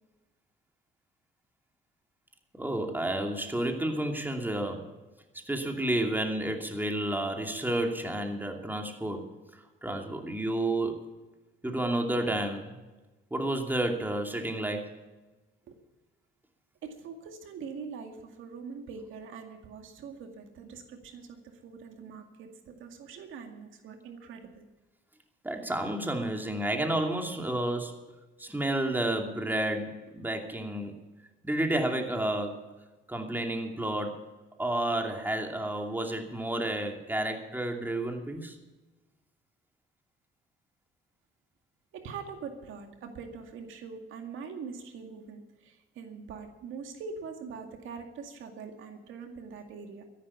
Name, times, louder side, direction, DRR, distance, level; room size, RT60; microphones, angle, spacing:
voice 1, 2.5-4.9 5.3-9.3 9.8-11.2 11.6-12.7 13.3-14.9 25.4-28.0 28.4-30.9 31.4-32.7 33.1-34.3 34.6-38.6, right 1 dB, 10° right, 3 dB, 2.6 m, -31 dB
voice 2, 16.8-24.7 41.9-50.0, right 5 dB, 80° right, 5 dB, 2.1 m, -43 dB
13.5 x 11.0 x 7.2 m, 1.2 s
cardioid pair, 90°, 20 cm